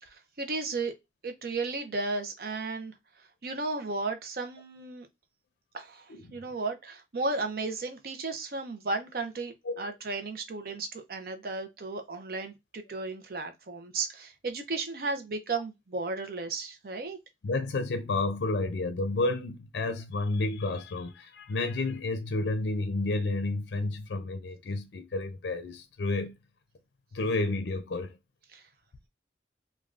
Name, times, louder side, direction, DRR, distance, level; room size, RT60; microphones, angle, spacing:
voice 1, 0.0-0.9 1.2-2.9 3.4-5.1 5.7-17.2 28.5-28.6, right 3 dB, 55° right, 0.5 m, -34 dB
voice 2, 17.4-26.3 27.1-28.2, left 2 dB, 75° left, 0.5 m, -31 dB
3.3 x 2.2 x 2.4 m
head